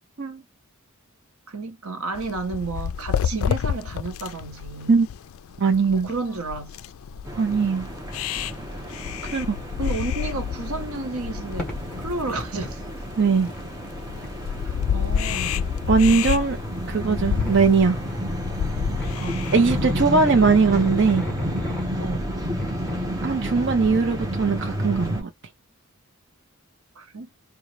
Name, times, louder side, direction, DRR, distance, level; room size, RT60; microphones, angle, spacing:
voice 1, 1.5-5.0 5.9-6.7 9.8-11.7 12.0-12.8 14.6-15.7 19.2-20.2 22.0-22.4 27.0-27.3, right 3 dB, 80° right, 1.0 m, -32 dB
sound 1, 2.1-19.8, left 8 dB, 70° left, 0.3 m, -30 dB
voice 2, 5.6-6.1 7.4-7.9 9.2-9.6 13.2-13.5 15.9-16.6 16.9-18.0 19.5-21.3 23.2-25.3, right 4 dB, 55° right, 0.7 m, -20 dB
sound 2, 7.3-25.2, equal, 15° right, 0.9 m, -31 dB
sound 3, 11.2-11.3 11.6-12.8 13.3-13.6 14.2-14.3 15.1-16.4 17.3-18.3 18.8-23.1, left 2 dB, 5° left, 1.4 m, -34 dB
3.8 x 2.3 x 3.1 m
head